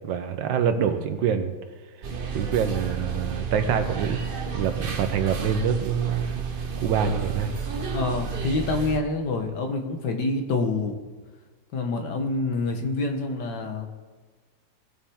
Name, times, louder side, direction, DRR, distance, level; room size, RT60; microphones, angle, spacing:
voice 1, 0.0-1.5 2.3-4.2 4.5-6.4 6.8-7.5, right 7 dB, 75° right, 8 dB, 1.5 m, -25 dB
sound 1, 2.0-9.0, right 6 dB, 45° right, 0.7 m, -31 dB
voice 2, 7.9-11.1 11.7-13.9, left 3 dB, 65° left, 5 dB, 1.7 m, -27 dB
18.5 x 7.2 x 3.6 m, 1.4 s
omnidirectional pair, 2.1 m